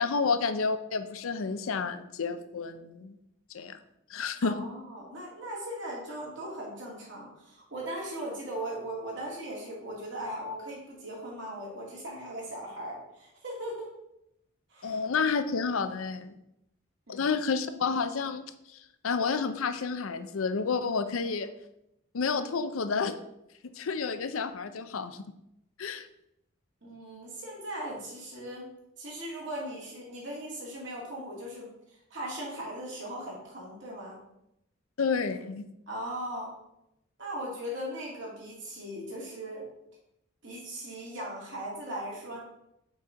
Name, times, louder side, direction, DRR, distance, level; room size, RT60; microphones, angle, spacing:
voice 1, 0.0-3.2 3.5-3.8 4.1-4.6 14.8-16.3 17.1-18.4 18.7-21.5 22.1-23.2 23.6-25.2 25.8-26.1 35.0-35.7, left 5 dB, 80° left, 10 dB, 0.6 m, -30 dB
voice 2, 4.4-13.9 14.7-15.0 17.1-17.2 26.8-28.7 29.0-31.7 32.1-34.2 35.9-36.6 37.2-39.7 40.4-42.4, right 1 dB, 60° right, -4 dB, 2.6 m, -38 dB
6.0 x 4.3 x 5.0 m, 0.83 s
head